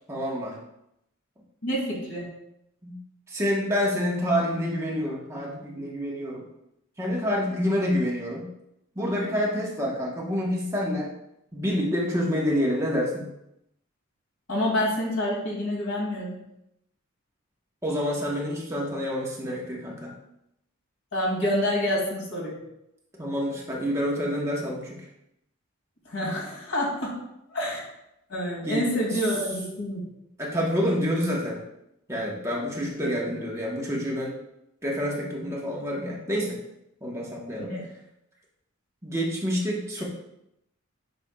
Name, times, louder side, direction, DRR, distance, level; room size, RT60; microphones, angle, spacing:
voice 1, 0.1-0.6 2.8-3.0 3.3-6.4 7.0-8.5 9.0-11.1 11.5-13.3 17.8-20.1 23.2-25.0 28.6-28.8 29.1-29.3 30.4-31.6 32.1-34.4 34.8-36.6 37.0-37.8 39.0-40.0, equal, 15° right, -4 dB, 1.1 m, -28 dB
voice 2, 1.6-2.3 14.5-16.4 21.1-22.6 26.0-27.1 27.5-27.8 28.3-30.1 33.0-33.1 37.7-37.8, equal, 70° left, -3 dB, 2.4 m, -27 dB
9.1 x 5.3 x 2.3 m, 0.83 s
head